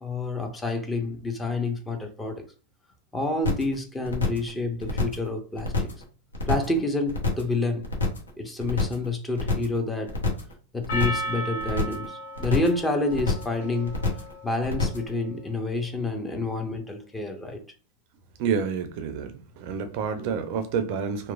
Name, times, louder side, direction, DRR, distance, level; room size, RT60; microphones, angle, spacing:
voice 1, 0.0-2.4 3.1-5.9 6.5-7.9 8.4-10.1 10.7-13.9 14.4-17.6, left 2 dB, 15° left, 0.6 m, -28 dB
sound 1, 3.4-3.7 4.0-4.5 4.8-5.3 5.6-6.0 6.3-6.8 7.1-7.5 7.8-8.3 8.6-9.1 9.4-9.8 10.1-10.5 10.8-11.3 11.6-12.1 12.3-12.8 13.1-13.6 13.8-14.3 14.6-15.1, left 4 dB, 85° left, 0.7 m, -27 dB
Percussion, 10.9-15.5, equal, 65° left, 0.4 m, -36 dB
voice 2, 18.4-21.3, right 6 dB, 55° right, 0.4 m, -29 dB
2.9 x 2.1 x 2.3 m
hypercardioid pair, 100°, 0 cm